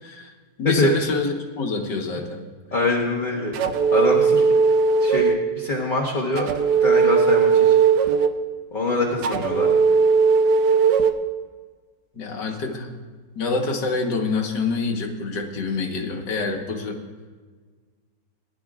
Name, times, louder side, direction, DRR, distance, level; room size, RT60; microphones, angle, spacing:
voice 1, 0.0-0.3 0.6-2.5 12.1-12.9 13.4-17.0, left 4 dB, 75° left, 2 dB, 2.0 m, -26 dB
voice 2, 2.7-3.5 3.9-4.4 5.0-6.5 6.8-7.8 8.7-9.7, left 2 dB, 30° left, -3 dB, 1.3 m, -24 dB
sound 1, 3.5-5.4 6.4-8.4 9.2-11.1, right 5 dB, 75° right, 1.3 m, -18 dB
20.0 x 11.0 x 2.4 m, 1.4 s
omnidirectional pair, 1.9 m